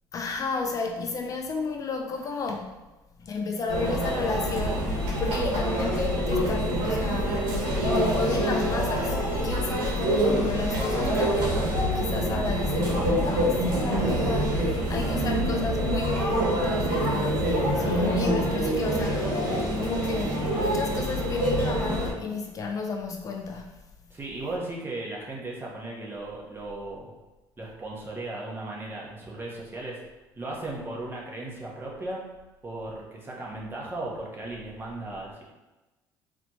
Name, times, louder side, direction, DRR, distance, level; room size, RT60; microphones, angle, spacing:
voice 1, 0.1-2.7 3.2-7.5 7.9-19.3 19.8-23.7, left 4 dB, 40° left, 3 dB, 0.4 m, -32 dB
Conversation / Chatter / Crowd, 3.7-22.1, right 1 dB, 90° right, 1.3 m, -26 dB
voice 2, 24.1-27.1 27.6-30.0 30.4-32.2 32.6-35.4, right 2 dB, 25° right, -4 dB, 1.2 m, -36 dB
4.1 x 2.9 x 3.0 m, 1.1 s
cardioid pair, 95°, 9 cm